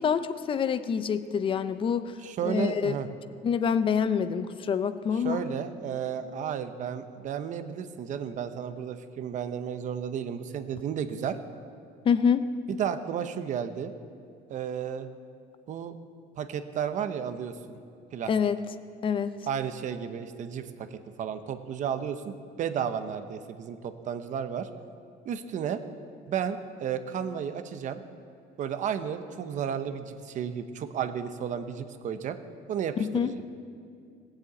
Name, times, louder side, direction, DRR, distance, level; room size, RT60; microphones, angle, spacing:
voice 1, 0.0-2.1 2.4-2.9 3.4-5.4 12.0-12.4 18.3-18.6 19.0-19.4 33.0-33.3, left 7 dB, 30° left, 12 dB, 0.5 m, -26 dB
voice 2, 2.2-3.1 5.1-11.4 12.7-13.9 14.5-15.1 15.7-15.9 16.4-17.8 18.1-18.3 19.5-24.7 25.2-25.8 26.3-28.0 28.6-32.4 32.7-33.3, right 8 dB, 40° right, 9 dB, 0.8 m, -33 dB
18.0 x 7.7 x 8.2 m, 2.3 s
cardioid pair, 175°, 19 cm